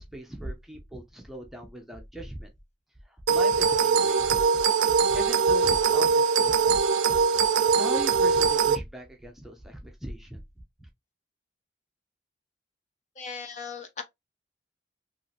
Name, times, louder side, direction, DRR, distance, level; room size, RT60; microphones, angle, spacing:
voice 1, 0.0-2.5 3.1-4.4 5.1-10.4 10.8-10.9, equal, ahead, 0.6 m, -39 dB
sound 1, 3.3-8.8, right 5 dB, 85° right, 0.4 m, -22 dB
voice 2, 13.2-14.0, left 5 dB, 40° left, 0.5 m, -38 dB
3.1 x 2.7 x 2.4 m
head